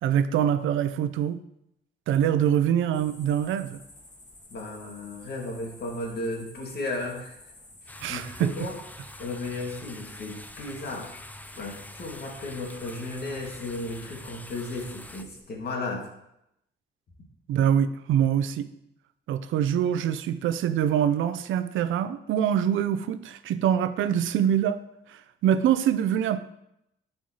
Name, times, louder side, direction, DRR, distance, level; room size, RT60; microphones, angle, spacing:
voice 1, 0.0-1.4 2.1-3.8 8.0-8.5 17.5-18.7 19.3-24.8 25.1-26.4, right 9 dB, 80° right, 12 dB, 0.5 m, -24 dB
sound 1, 2.9-15.4, left 2 dB, 40° left, 1.6 m, -51 dB
voice 2, 4.5-7.4 7.9-8.8 9.2-11.1 11.6-16.1, left 2 dB, 55° left, 0 dB, 1.9 m, -34 dB
sound 2, 7.9-15.2, left 1 dB, 10° left, 0.4 m, -45 dB
10.5 x 4.4 x 2.9 m, 0.81 s
cardioid pair, 85°, 20 cm